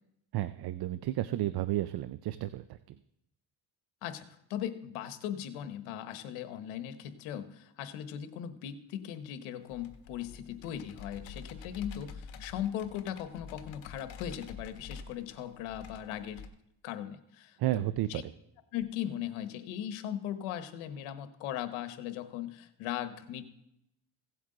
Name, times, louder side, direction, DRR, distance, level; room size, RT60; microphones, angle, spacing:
voice 1, 0.3-3.0 17.6-18.2, right 14 dB, 55° right, 13 dB, 0.6 m, -32 dB
voice 2, 4.0-16.5 16.8-17.8 18.1-18.2 18.7-23.4, left 10 dB, 85° left, 10 dB, 1.2 m, -38 dB
Computer keyboard, 9.7-16.4, left 5 dB, 70° left, 1.4 m, -48 dB
16.5 x 8.0 x 3.9 m, 0.80 s
cardioid pair, 95°, 48 cm